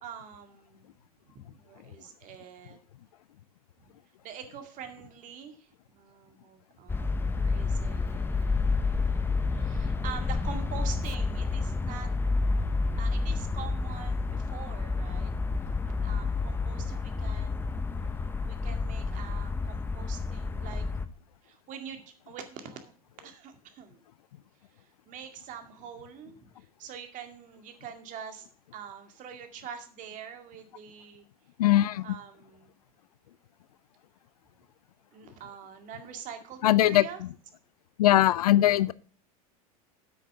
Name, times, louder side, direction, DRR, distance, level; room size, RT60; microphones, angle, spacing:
voice 1, 0.0-0.9 1.4-2.8 3.8-3.9 4.2-12.1 13.0-15.3 15.8-18.1 18.4-20.9 21.4-22.9 23.2-24.0 24.8-28.5 28.7-31.3 32.0-32.7 35.1-37.2, right 8 dB, 45° right, 6 dB, 2.1 m, -45 dB
sound 1, 6.9-21.1, left 3 dB, 10° left, 0.8 m, -29 dB
voice 2, 31.6-32.1 36.6-37.0 38.0-38.9, left 14 dB, 90° left, 19 dB, 0.5 m, -20 dB
8.5 x 6.3 x 6.6 m, 0.42 s
hypercardioid pair, 105°, 19 cm